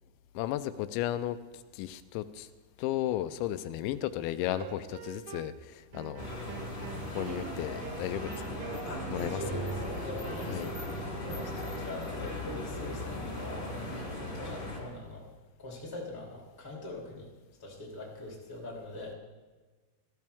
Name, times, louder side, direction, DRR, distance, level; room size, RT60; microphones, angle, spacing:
voice 1, 0.3-1.4 1.7-2.5 2.8-6.3 7.1-8.6 9.1-9.7 10.5-10.7, left 13 dB, 90° left, 11 dB, 2.9 m, -34 dB
sound 1, 4.5-5.6 5.9-11.8, right 10 dB, 85° right, 2.1 m, -44 dB
sound 2, 6.2-14.8, left 1 dB, 25° left, 2.3 m, -38 dB
voice 2, 8.8-10.8 11.2-15.3 15.6-17.3 17.6-19.1, left 2 dB, 5° left, -3 dB, 1.8 m, -42 dB
17.0 x 14.0 x 3.5 m, 1.3 s
omnidirectional pair, 5.2 m